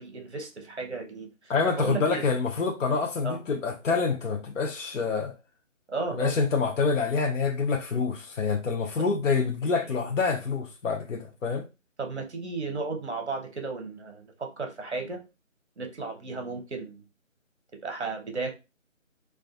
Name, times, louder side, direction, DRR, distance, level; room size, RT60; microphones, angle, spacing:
voice 1, 0.0-2.2 3.2-3.4 5.9-6.3 12.0-15.2 15.8-17.0 17.8-18.5, right 4 dB, 55° right, 0.7 m, -34 dB
voice 2, 1.5-5.3 6.1-11.7, left 4 dB, 70° left, 0.5 m, -27 dB
2.5 x 2.3 x 2.4 m
figure-of-eight pair, 180°, 40 cm